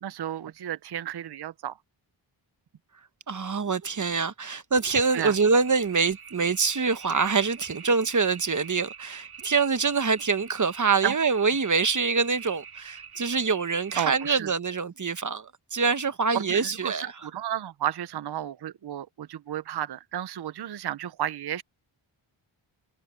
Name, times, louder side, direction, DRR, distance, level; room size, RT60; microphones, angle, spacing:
voice 1, 0.0-1.8 5.1-5.3 11.0-11.2 14.0-14.5 16.3-21.6, right 11 dB, 50° right, 0.7 m, -32 dB
voice 2, 3.3-17.1, right 5 dB, 35° right, 1.1 m, -25 dB
sound 1, 5.0-14.4, right 7 dB, 80° right, 3.2 m, -45 dB
wide cardioid pair, 85°, 50 cm